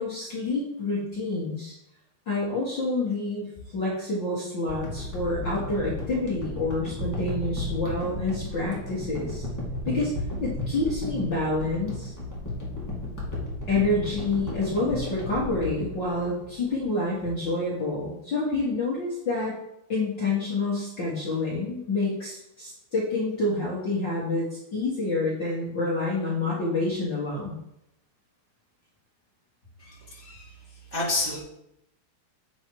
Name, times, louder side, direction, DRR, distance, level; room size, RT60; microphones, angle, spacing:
voice 1, 0.0-1.7 2.3-9.5 9.8-10.1 10.4-12.1 13.7-19.6 19.9-27.6, left 2 dB, 40° left, -6 dB, 1.7 m, -28 dB
sound 1, 4.7-16.9 17.4-17.5, left 1 dB, 10° left, 0.7 m, -34 dB
voice 2, 29.8-30.5 30.9-31.4, left 2 dB, 25° right, -7 dB, 1.6 m, -30 dB
8.5 x 6.1 x 4.7 m, 0.82 s
omnidirectional pair, 4.3 m